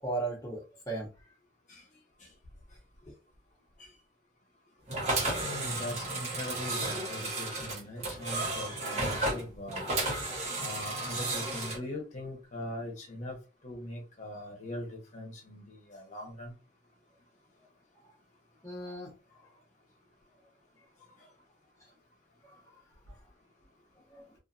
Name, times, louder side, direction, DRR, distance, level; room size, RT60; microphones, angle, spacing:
voice 1, 0.0-1.1 18.6-19.1 22.4-22.6 23.1-23.2 24.1-24.3, right 2 dB, 20° left, -3 dB, 0.8 m, -36 dB
sound 1, 4.9-11.8, right 2 dB, 40° right, 1.0 m, -33 dB
voice 2, 5.4-9.8 10.6-13.4 13.6-16.5, left 1 dB, 45° left, 1 dB, 0.9 m, -41 dB
2.7 x 2.4 x 2.4 m, 0.31 s
head